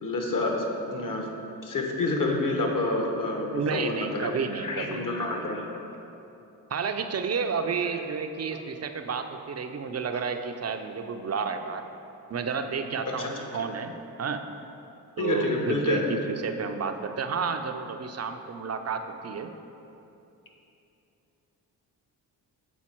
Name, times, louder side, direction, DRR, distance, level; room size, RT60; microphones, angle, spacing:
voice 1, 0.0-1.3 1.6-4.3 4.6-5.9 7.9-8.0 10.1-10.2 13.0-13.6 15.2-16.1, left 2 dB, 45° left, 1 dB, 1.2 m, -29 dB
voice 2, 3.5-5.1 6.7-11.9 12.3-14.4 15.2-19.5, right 5 dB, 35° right, 6 dB, 0.5 m, -31 dB
7.2 x 4.0 x 4.5 m, 2.9 s
supercardioid pair, 45°, 45 cm